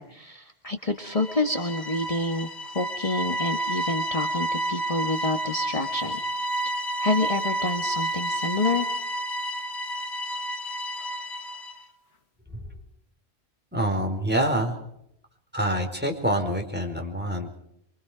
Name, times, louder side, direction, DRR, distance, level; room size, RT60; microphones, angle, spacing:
voice 1, 0.0-2.5 2.7-6.2 7.0-8.9, left 2 dB, 35° left, 4 dB, 1.6 m, -28 dB
sound 1, 1.1-11.8, right 1 dB, 80° left, 1.8 m, -30 dB
voice 2, 13.7-14.8 15.5-17.6, right 1 dB, 10° right, 2 dB, 4.7 m, -26 dB
28.0 x 24.0 x 5.1 m, 0.76 s
omnidirectional pair, 1.1 m